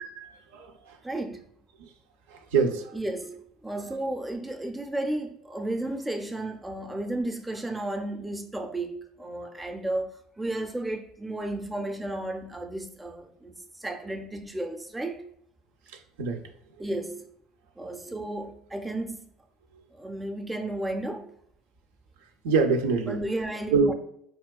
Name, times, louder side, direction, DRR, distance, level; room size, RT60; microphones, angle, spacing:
voice 1, 0.2-1.0 1.8-1.9 2.3-2.9 16.2-16.4 22.4-23.2 23.7-23.9, right 5 dB, 85° right, 0.3 m, -25 dB
voice 2, 1.0-1.4 2.9-10.1 10.4-15.2 16.8-17.2 17.8-19.2 19.9-21.3 23.1-23.9, right 1 dB, 10° right, 0.4 m, -33 dB
4.1 x 2.2 x 2.2 m
supercardioid pair, 90°, 0 cm